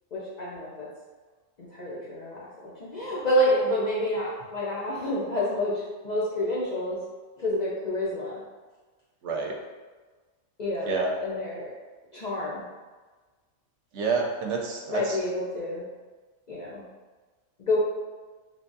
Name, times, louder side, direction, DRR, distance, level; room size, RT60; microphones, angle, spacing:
voice 1, 0.1-0.9 1.7-7.0 7.4-8.4 10.6-11.7 12.1-12.6 14.9-15.8 16.5-16.8 17.6-17.8, left 1 dB, 50° left, -7 dB, 0.5 m, -28 dB
voice 2, 9.2-9.5 10.9-11.1 13.9-15.2, right 4 dB, 70° right, 0 dB, 0.9 m, -28 dB
3.4 x 3.2 x 2.6 m, 1.3 s
omnidirectional pair, 1.3 m